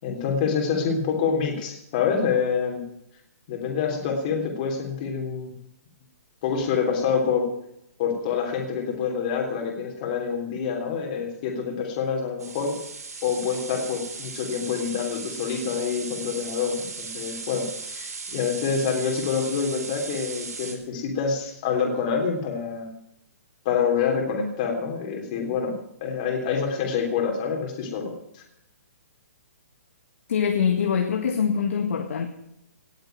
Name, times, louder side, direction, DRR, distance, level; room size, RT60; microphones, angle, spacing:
voice 1, 0.0-2.8 3.5-5.5 6.4-7.5 8.0-12.8 13.2-22.9 23.6-25.7 26.0-28.4, left 6 dB, 30° left, 1 dB, 3.4 m, -26 dB
sound 1, 12.4-20.7, right 4 dB, 85° right, 5.7 m, -37 dB
voice 2, 30.3-32.3, left 7 dB, 60° left, 4 dB, 1.8 m, -24 dB
18.5 x 7.9 x 9.2 m, 0.78 s
hypercardioid pair, 165°, 8 cm